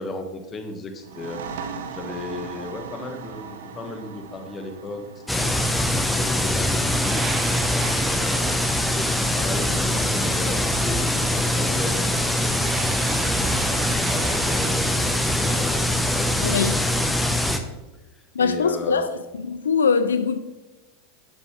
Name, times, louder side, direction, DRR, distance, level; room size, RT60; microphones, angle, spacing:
voice 1, 0.0-1.4 1.9-13.3 13.5-17.1 18.1-19.0, left 2 dB, 30° left, 1.2 m, -35 dB
sound 1, 1.0-8.4, right 6 dB, 75° right, 0.6 m, -39 dB
sound 2, 5.3-17.6, left 1 dB, 5° left, 0.7 m, -23 dB
sound 3, 7.0-15.3, right 7 dB, 30° right, 0.5 m, -37 dB
voice 2, 16.4-16.8 18.4-19.1 19.5-20.4, left 5 dB, 85° left, 0.3 m, -22 dB
6.8 x 6.8 x 3.1 m
hypercardioid pair, 95°, 0 cm